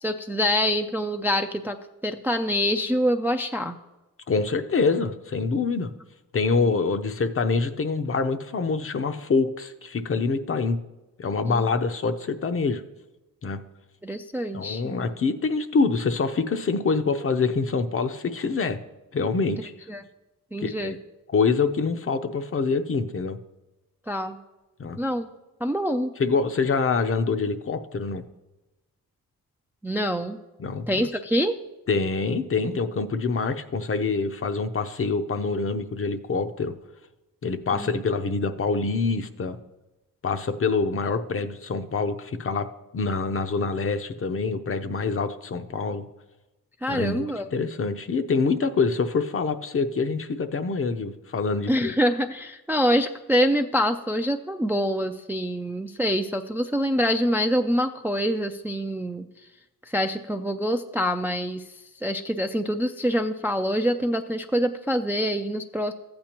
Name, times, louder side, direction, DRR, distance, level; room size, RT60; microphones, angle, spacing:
voice 1, 0.0-1.8 2.0-3.8 11.4-11.7 14.0-15.0 19.9-20.0 20.5-20.9 24.1-24.4 25.0-25.3 25.6-26.1 29.8-30.4 30.9-31.6 37.7-37.9 46.8-47.5 51.7-59.3 59.8-61.6 62.0-65.9, equal, 5° right, 6 dB, 0.3 m, -25 dB
voice 2, 4.3-5.9 6.3-10.8 11.2-12.8 13.4-13.6 14.5-18.8 19.1-19.7 20.6-21.0 21.3-23.4 24.8-25.0 26.2-28.2 30.6-31.1 31.9-36.7 37.4-39.6 40.2-42.7 42.9-46.0 46.9-47.3 47.5-51.9, left 4 dB, 40° left, 9 dB, 0.6 m, -25 dB
14.0 x 8.7 x 2.9 m, 1.0 s
cardioid pair, 95°, 36 cm